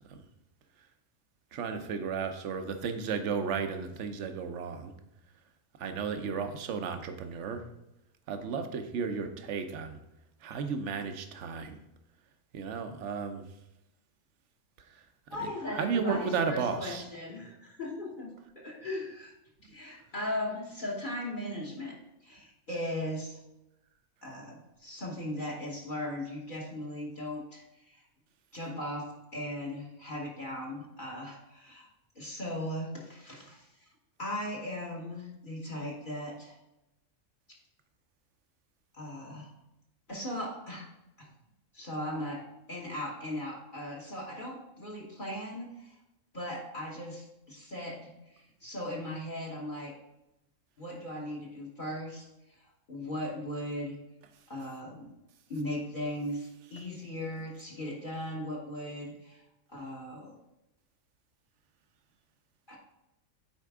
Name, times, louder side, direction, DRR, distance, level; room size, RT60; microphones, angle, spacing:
voice 1, 1.5-4.9 5.8-7.6 8.3-10.0 10.4-11.8 12.5-13.4 15.0-15.1 15.4-17.0, right 5 dB, 60° right, 7 dB, 1.0 m, -34 dB
voice 2, 15.3-19.3 19.6-23.4 24.2-28.0 28.5-31.9 32.1-33.7 34.2-36.6 38.9-39.5 40.1-40.9 41.2-41.3 41.7-45.9 46.3-49.9 50.8-52.3 52.6-54.0 54.5-55.1 55.5-59.4 59.7-60.4 62.7-62.8, left 1 dB, 35° left, -2 dB, 1.3 m, -38 dB
9.2 x 4.5 x 3.6 m, 0.91 s
omnidirectional pair, 1.5 m